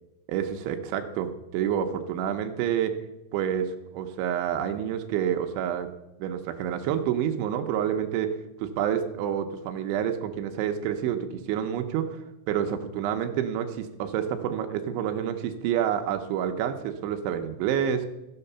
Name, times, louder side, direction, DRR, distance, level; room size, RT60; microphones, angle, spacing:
voice 1, 0.3-2.9 3.3-5.9 6.2-8.4 8.6-12.2 12.5-18.1, right 9 dB, 80° right, 6 dB, 2.9 m, -28 dB
14.5 x 7.9 x 6.7 m, 0.97 s
omnidirectional pair, 5.9 m